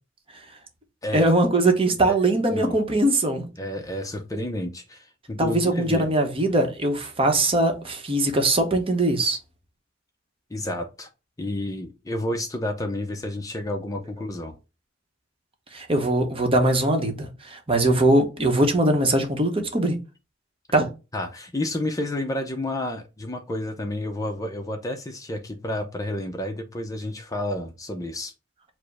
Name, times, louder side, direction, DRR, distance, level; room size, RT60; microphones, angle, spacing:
voice 1, 1.1-3.5 5.4-9.4 15.7-20.0 20.7-20.9, right 1 dB, 30° right, 0.9 m, -21 dB
voice 2, 3.6-6.1 10.5-11.1 11.4-14.6 21.1-28.3, left 1 dB, 20° left, 0.5 m, -30 dB
4.9 x 2.1 x 4.6 m
head